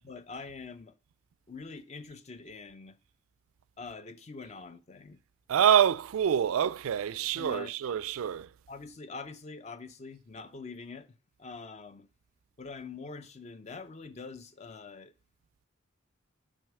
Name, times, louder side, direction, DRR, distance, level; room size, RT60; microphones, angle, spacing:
voice 1, 0.0-1.0 1.5-3.0 3.8-5.2 7.4-7.8 8.7-12.1 12.6-15.1, left 4 dB, 30° left, 0.5 m, -44 dB
voice 2, 5.5-8.5, right 9 dB, 75° right, 0.3 m, -26 dB
6.3 x 4.5 x 4.8 m
head